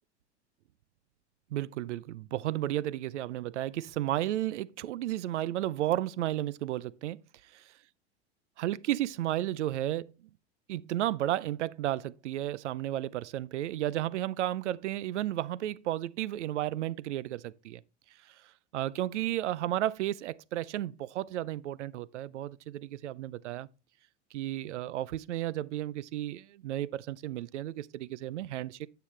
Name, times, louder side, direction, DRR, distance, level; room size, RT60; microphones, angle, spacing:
voice 1, 1.5-7.2 8.6-10.1 10.7-17.8 18.3-18.4 18.7-23.7 24.3-28.9, right 13 dB, 85° right, 0.6 m, -33 dB
9.3 x 6.8 x 3.3 m
hypercardioid pair, 105°, 34 cm